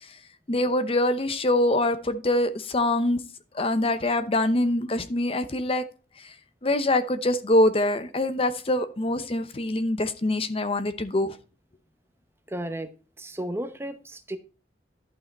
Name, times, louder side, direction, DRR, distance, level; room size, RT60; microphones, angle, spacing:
voice 1, 0.5-3.2 3.5-5.8 6.2-6.3 6.6-11.4, left 1 dB, 35° left, 0.8 m, -24 dB
voice 2, 12.5-12.9 13.2-14.4, right 1 dB, 15° right, 0.8 m, -33 dB
12.0 x 5.6 x 4.1 m
head